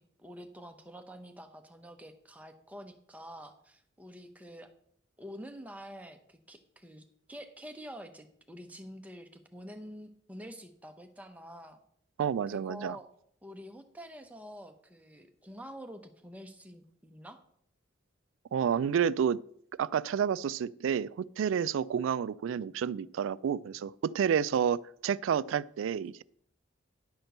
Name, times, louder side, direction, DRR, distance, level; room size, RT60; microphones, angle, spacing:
voice 1, 0.0-4.7 5.2-11.8 12.5-13.1 13.4-17.4, equal, 5° right, 0.7 m, -47 dB
voice 2, 12.2-13.0 18.5-19.4 19.8-26.2, right 8 dB, 75° right, 0.3 m, -30 dB
10.5 x 4.4 x 6.6 m
head